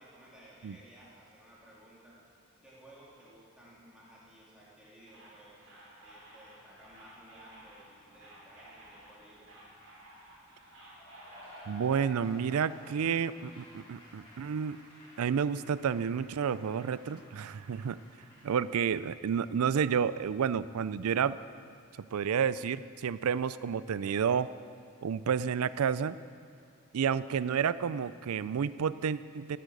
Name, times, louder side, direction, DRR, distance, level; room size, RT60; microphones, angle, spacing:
voice 1, 0.0-2.2 2.6-5.7 6.0-9.5, right 1 dB, 5° right, -8 dB, 3.3 m, -56 dB
sound 1, 5.1-11.9, right 1 dB, 65° right, 3.9 m, -54 dB
Cheering / Applause / Crowd, 10.9-18.6, left 1 dB, 25° left, 3.8 m, -54 dB
voice 2, 11.7-14.8 15.2-18.0 18.4-21.4 22.1-24.5 25.0-26.2 26.9-29.6, right 7 dB, 85° right, 16 dB, 0.4 m, -30 dB
14.0 x 8.6 x 6.6 m, 2.2 s
head